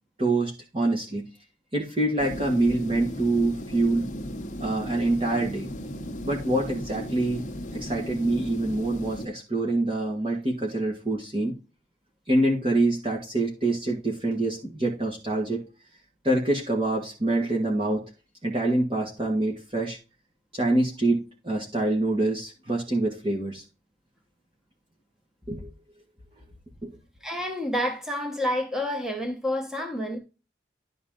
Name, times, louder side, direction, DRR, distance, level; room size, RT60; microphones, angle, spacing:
voice 1, 0.2-1.3 1.7-4.1 4.6-5.7 6.2-7.4 7.7-11.5 12.3-15.6 16.2-18.0 18.4-20.0 20.5-23.6 25.5-25.7 26.8-27.0, right 2 dB, 30° right, 1.5 m, -25 dB
sound 1, 2.2-9.3, equal, 40° left, 0.8 m, -36 dB
voice 2, 27.2-30.2, left 1 dB, 5° right, 1.2 m, -29 dB
11.5 x 3.9 x 3.7 m
head